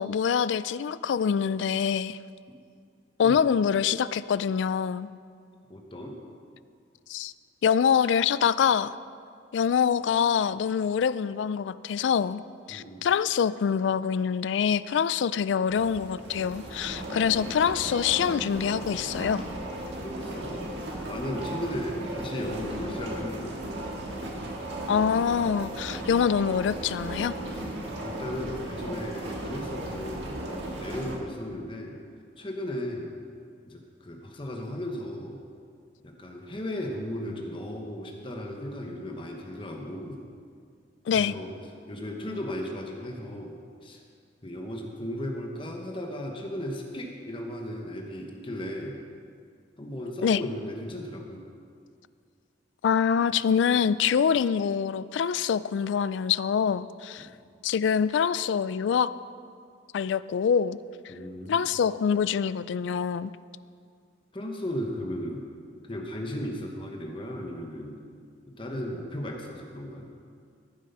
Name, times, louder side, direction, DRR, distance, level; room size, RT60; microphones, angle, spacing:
voice 1, 0.0-2.2 3.2-5.1 7.1-7.3 7.6-9.0 9.5-12.4 12.7-19.4 24.9-27.3 41.1-41.3 50.2-50.4 52.8-57.3 57.6-59.1 59.9-60.8 61.5-63.3, left 7 dB, 85° left, 0.3 m, -25 dB
voice 2, 5.7-6.2 12.7-13.0 19.9-20.7 21.1-23.6 27.5-27.6 28.0-32.0 32.4-33.1 33.7-35.4 36.0-40.2 41.1-41.5 41.9-44.0 44.4-49.0 49.8-51.4 57.2-57.3 61.1-61.7 64.3-65.5 65.8-68.0 68.5-70.1, left 1 dB, 30° left, 1.1 m, -36 dB
sound 1, 15.7-31.2, right 1 dB, 75° right, 1.8 m, -36 dB
14.0 x 7.4 x 5.5 m
head